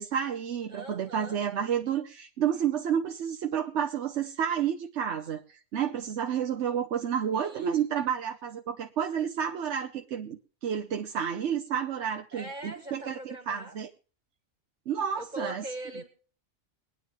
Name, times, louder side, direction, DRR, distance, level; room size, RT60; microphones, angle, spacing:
voice 1, 0.0-13.9 14.9-15.6, right 8 dB, 75° right, 4 dB, 1.1 m, -30 dB
voice 2, 0.7-1.4 7.3-7.8 12.3-13.7 15.2-16.1, right 1 dB, 40° right, 3 dB, 2.2 m, -41 dB
23.0 x 9.8 x 3.1 m, 0.39 s
omnidirectional pair, 1.2 m